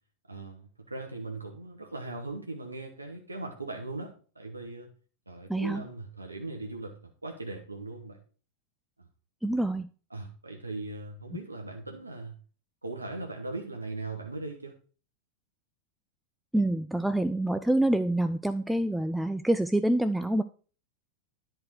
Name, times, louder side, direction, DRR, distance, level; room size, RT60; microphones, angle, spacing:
voice 1, 0.3-4.9 5.3-8.2 10.1-12.4 12.8-14.7, right 2 dB, 80° right, 2 dB, 1.0 m, -39 dB
voice 2, 5.5-5.8 9.4-9.9 16.5-20.4, right 1 dB, 5° right, 11 dB, 0.3 m, -26 dB
10.5 x 4.5 x 4.7 m, 0.39 s
figure-of-eight pair, 90°, 0 cm